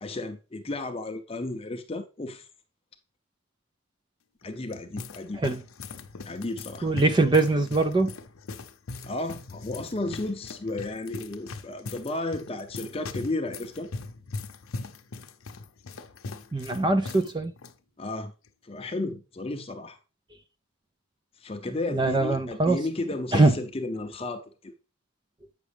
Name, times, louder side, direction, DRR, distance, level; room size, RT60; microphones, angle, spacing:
voice 1, 0.0-2.5 4.4-5.4 6.2-6.9 9.1-13.9 18.0-18.3 18.6-20.0 21.4-24.7, left 2 dB, 25° left, 0.6 m, -33 dB
sound 1, 4.4-17.3 17.6-17.7 18.4-18.7, left 3 dB, 75° left, 0.7 m, -40 dB
voice 2, 6.8-8.1 16.5-17.5 21.9-22.8 23.3-23.5, right 2 dB, 20° right, 0.3 m, -22 dB
8.3 x 6.0 x 3.3 m
head